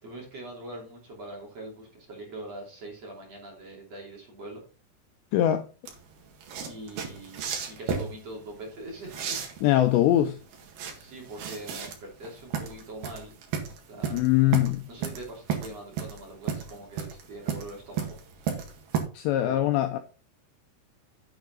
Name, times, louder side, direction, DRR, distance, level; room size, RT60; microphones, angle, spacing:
voice 1, 0.0-4.6 6.6-9.4 10.9-13.3 13.9-14.5 14.9-18.2 19.4-19.7, right 1 dB, 35° right, 3.4 m, -42 dB
voice 2, 5.3-5.7 9.6-10.4 14.1-14.8 19.1-20.0, left 13 dB, 85° left, 2.5 m, -22 dB
sound 1, 5.9-19.0, right 7 dB, 60° right, 3.3 m, -34 dB
9.5 x 7.9 x 4.0 m
omnidirectional pair, 5.6 m